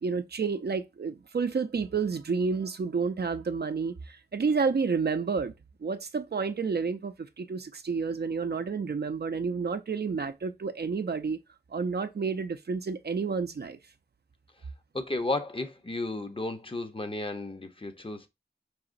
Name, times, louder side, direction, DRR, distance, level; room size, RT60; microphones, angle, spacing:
voice 1, 0.0-5.5 5.8-11.4 11.7-13.8, right 5 dB, 65° right, 0.4 m, -30 dB
voice 2, 14.9-18.3, left 2 dB, 30° left, 0.6 m, -33 dB
4.8 x 2.9 x 2.5 m
wide cardioid pair, 60°, 18 cm